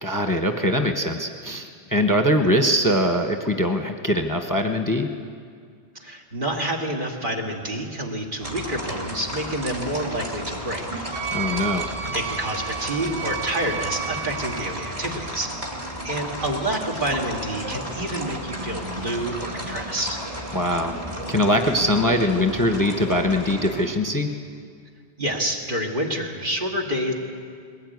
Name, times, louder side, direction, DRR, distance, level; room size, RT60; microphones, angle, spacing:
voice 1, 0.0-5.1 11.3-11.9 20.5-21.0 21.3-24.3, left 1 dB, 20° left, 5 dB, 1.0 m, -22 dB
voice 2, 6.0-11.6 12.1-15.5 16.0-20.2 25.2-27.1, right 1 dB, 50° right, 0 dB, 2.5 m, -28 dB
sound 1, 8.4-23.8, equal, 30° right, 2.8 m, -33 dB
Wind instrument woodwind instrument, 11.1-14.7, right 9 dB, 70° right, 3.6 m, -32 dB
21.0 x 17.0 x 9.4 m, 2.2 s
omnidirectional pair, 1.1 m